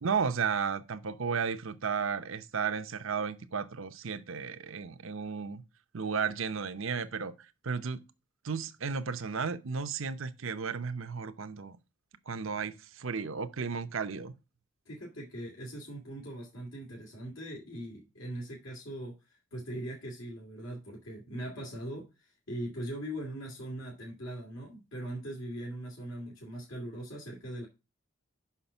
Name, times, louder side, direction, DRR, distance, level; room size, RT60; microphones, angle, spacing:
voice 1, 0.0-5.6 5.9-8.0 8.4-11.8 12.3-14.3, right 5 dB, 75° right, 0.7 m, -34 dB
voice 2, 14.9-19.2 19.5-22.1 22.5-27.7, right 1 dB, 75° left, 2.6 m, -40 dB
5.8 x 5.8 x 6.9 m
head